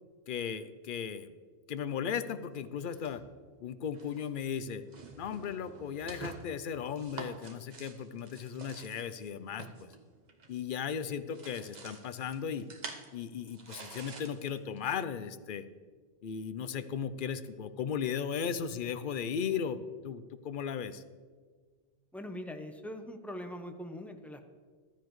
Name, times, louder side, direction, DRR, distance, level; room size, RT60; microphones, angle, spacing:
voice 1, 0.3-1.3 1.7-3.2 3.6-4.8 5.2-9.9 10.5-12.7 13.1-15.7 16.2-21.0, left 7 dB, 60° left, 12 dB, 0.7 m, -36 dB
sound 1, 2.9-3.5 3.9-4.3 4.8-10.8 11.1-14.8, right 3 dB, 45° right, 0.9 m, -48 dB
voice 2, 22.1-24.4, left 1 dB, ahead, 6 dB, 0.6 m, -42 dB
14.5 x 12.5 x 3.1 m, 1.5 s
omnidirectional pair, 1.1 m